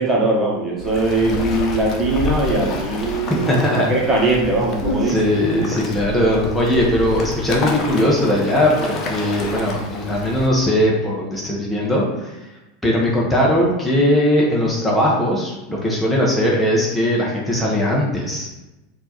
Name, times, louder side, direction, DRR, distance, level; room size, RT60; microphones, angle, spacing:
voice 1, 0.0-3.6 3.9-5.2, right 2 dB, 20° right, -4 dB, 1.6 m, -20 dB
Waves surf, 0.8-10.5, left 3 dB, 40° left, 0.9 m, -29 dB
voice 2, 3.3-3.9 4.8-12.4 12.8-18.5, left 1 dB, 5° left, -5 dB, 1.1 m, -19 dB
4.4 x 2.9 x 4.0 m, 1.0 s
hypercardioid pair, 85°, 0 cm